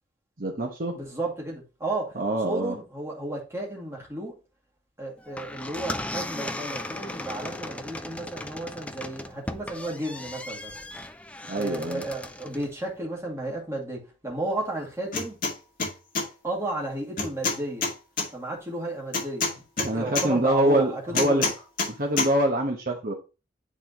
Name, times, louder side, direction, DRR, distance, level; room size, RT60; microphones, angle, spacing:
voice 1, 0.4-1.0 2.2-2.7 11.5-12.0 19.8-21.4 22.0-23.1, right 1 dB, 50° right, 1.0 m, -25 dB
voice 2, 0.9-2.2 2.4-4.4 5.0-10.8 11.5-15.4 16.4-17.9 18.3-21.5, right 2 dB, 15° right, 2.3 m, -33 dB
sound 1, 5.2-12.8, left 1 dB, 5° left, 0.4 m, -37 dB
sound 2, 15.1-15.5 15.8-16.3 17.2-18.3 19.1-20.3 21.1-21.9 22.2-22.3, left 4 dB, 45° left, 2.2 m, -26 dB
9.3 x 4.2 x 2.9 m
head